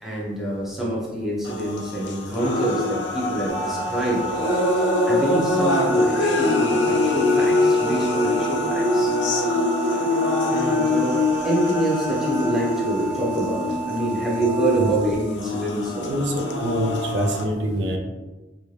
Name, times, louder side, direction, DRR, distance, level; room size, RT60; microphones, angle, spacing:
voice 1, 0.0-4.3 5.1-9.2 10.5-16.2, right 1 dB, ahead, -5 dB, 0.6 m, -26 dB
sound 1, 1.4-17.4, left 2 dB, 65° left, 0.5 m, -23 dB
sound 2, 3.5-14.9, right 5 dB, 25° right, 1.0 m, -33 dB
voice 2, 16.0-18.0, equal, 65° right, 2 dB, 0.5 m, -25 dB
3.3 x 2.6 x 3.2 m, 1.2 s
head